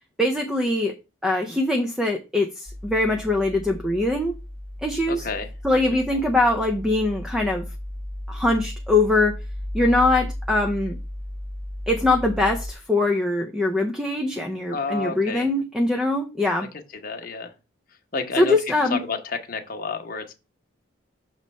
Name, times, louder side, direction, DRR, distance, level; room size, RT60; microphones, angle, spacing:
voice 1, 0.2-0.9 1.2-4.3 4.8-5.3 5.6-7.6 8.3-9.4 9.7-11.0 11.9-16.7 18.4-19.0, left 2 dB, 5° right, 0.5 m, -22 dB
sound 1, 2.7-12.7, left 1 dB, 25° right, 1.0 m, -35 dB
voice 2, 5.1-6.2 14.7-15.5 17.0-17.6 18.1-18.5 18.9-20.3, left 4 dB, 45° left, 0.9 m, -31 dB
6.5 x 3.1 x 5.3 m
head